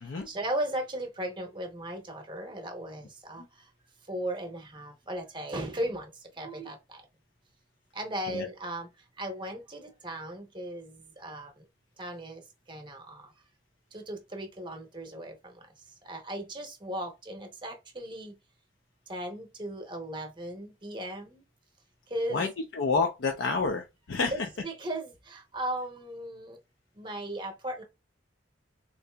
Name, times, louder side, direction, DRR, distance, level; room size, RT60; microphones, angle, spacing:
voice 1, 0.3-3.4 4.1-6.1 6.4-6.8 8.0-8.9 9.2-11.5 12.0-12.4 12.7-13.2 13.9-15.3 16.1-18.3 19.1-21.4 22.1-22.5 24.3-26.6 27.0-27.8, right 1 dB, 25° right, 0.8 m, -36 dB
voice 2, 22.3-24.5, left 4 dB, 70° left, 0.5 m, -29 dB
3.8 x 2.7 x 2.2 m
head